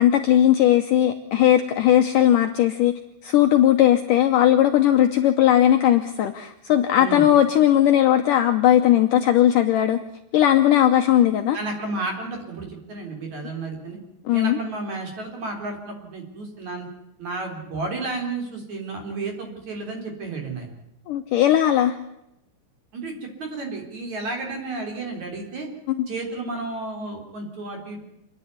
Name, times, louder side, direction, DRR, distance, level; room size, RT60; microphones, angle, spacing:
voice 1, 0.0-2.9 3.2-10.0 10.3-11.6 14.3-14.6 21.1-22.0 25.9-26.1, left 11 dB, 85° left, 7 dB, 1.9 m, -18 dB
voice 2, 11.5-14.0 14.3-16.9 17.2-20.7 22.9-25.7 26.1-28.0, right 3 dB, 45° right, 2 dB, 4.7 m, -32 dB
27.0 x 11.0 x 9.5 m, 0.85 s
omnidirectional pair, 5.0 m